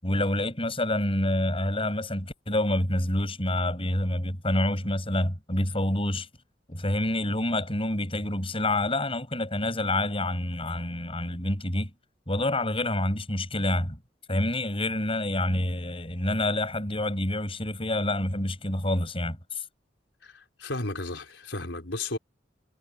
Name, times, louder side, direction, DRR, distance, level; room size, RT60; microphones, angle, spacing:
voice 1, 0.0-6.3 6.7-11.9 12.3-14.0 14.3-19.6, left 1 dB, 30° left, 7.3 m, -27 dB
voice 2, 20.2-22.2, left 2 dB, 80° left, 4.2 m, -34 dB
head